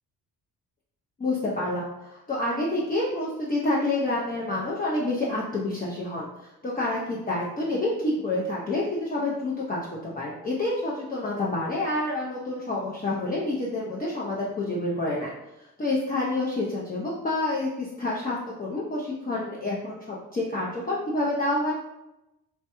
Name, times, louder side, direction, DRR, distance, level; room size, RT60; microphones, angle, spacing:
voice 1, 1.2-15.3 15.8-21.7, left 2 dB, 20° left, -5 dB, 0.5 m, -28 dB
2.2 x 2.2 x 2.9 m, 0.93 s
supercardioid pair, 60°, 43 cm